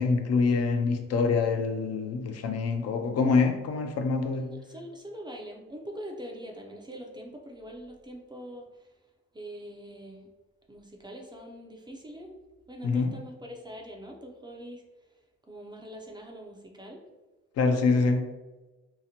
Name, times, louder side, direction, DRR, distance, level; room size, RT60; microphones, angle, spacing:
voice 1, 0.0-4.4 12.8-13.1 17.6-18.2, left 4 dB, 55° left, 5 dB, 0.4 m, -25 dB
voice 2, 4.3-8.9 9.3-10.3 10.7-12.3 12.7-14.8 15.4-17.0, equal, 15° right, 1 dB, 0.4 m, -43 dB
2.8 x 2.0 x 2.8 m, 1.1 s
cardioid pair, 90°, 30 cm